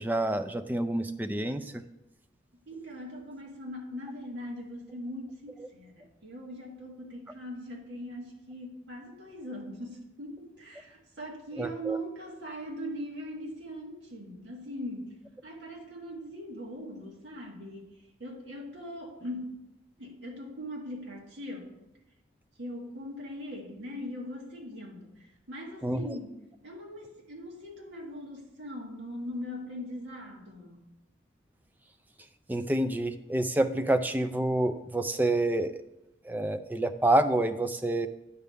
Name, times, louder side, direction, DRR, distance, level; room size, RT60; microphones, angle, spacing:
voice 1, 0.0-1.6 11.6-12.0 25.8-26.0 32.5-35.7 36.2-38.1, right 1 dB, 10° right, 9 dB, 0.3 m, -27 dB
voice 2, 2.7-15.1 15.4-17.9 18.2-19.6 20.0-21.8 22.6-26.4 26.6-30.9, equal, 65° right, -1 dB, 1.8 m, -40 dB
9.5 x 3.5 x 6.6 m, 0.91 s
head